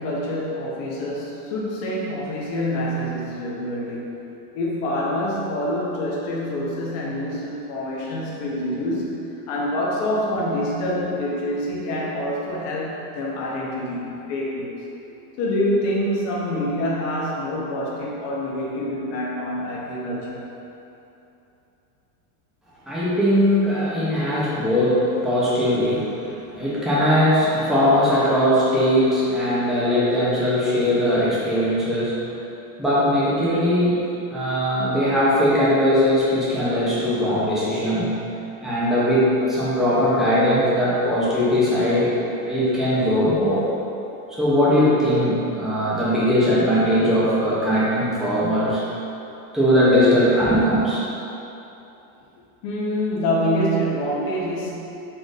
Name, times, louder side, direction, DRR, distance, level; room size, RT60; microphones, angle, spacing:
voice 1, 0.0-4.2 4.5-14.8 15.4-20.5 52.6-54.7, equal, 45° left, -4 dB, 0.8 m, -26 dB
voice 2, 22.9-26.1 26.5-32.1 32.8-34.0 34.3-38.1 38.6-42.1 42.4-43.7 44.3-48.8 49.5-51.0, equal, ahead, -10 dB, 0.6 m, -20 dB
4.3 x 2.6 x 4.8 m, 2.9 s
supercardioid pair, 160°, 46 cm